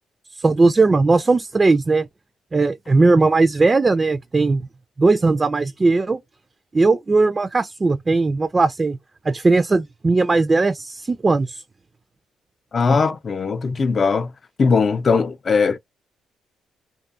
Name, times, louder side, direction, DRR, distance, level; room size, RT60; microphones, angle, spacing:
voice 1, 0.4-2.1 2.5-4.7 5.0-6.2 6.7-9.0 9.2-11.6, right 3 dB, 30° right, 0.4 m, -18 dB
voice 2, 12.7-14.3 14.6-15.8, left 4 dB, 45° left, 0.5 m, -19 dB
2.5 x 2.3 x 2.3 m
supercardioid pair, 65°, 0 cm